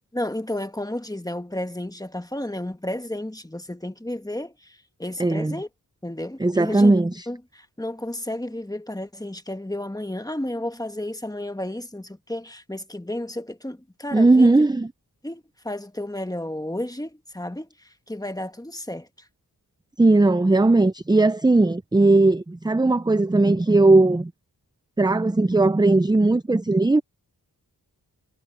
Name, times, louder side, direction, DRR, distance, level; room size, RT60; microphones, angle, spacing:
voice 1, 0.1-5.7 6.0-6.9 7.3-14.6 15.2-19.3, left 1 dB, 10° left, 1.4 m, -32 dB
voice 2, 5.2-5.6 6.4-7.1 14.1-14.9 20.0-24.3 25.0-27.0, right 2 dB, 10° right, 0.5 m, -18 dB
wide cardioid pair, 75°, 41 cm